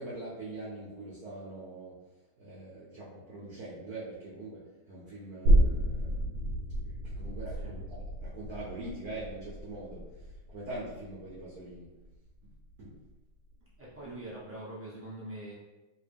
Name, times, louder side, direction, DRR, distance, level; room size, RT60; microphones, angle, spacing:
voice 1, 0.0-2.0 2.4-6.2 7.0-11.9 12.4-13.0, right 2 dB, 60° right, -7 dB, 1.1 m, -43 dB
sound 1, 5.5-12.7 13.1-13.2, equal, 90° right, 1.5 m, -30 dB
voice 2, 13.8-15.5, right 1 dB, 15° right, -9 dB, 0.6 m, -43 dB
3.2 x 2.9 x 3.4 m, 1.1 s
omnidirectional pair, 2.3 m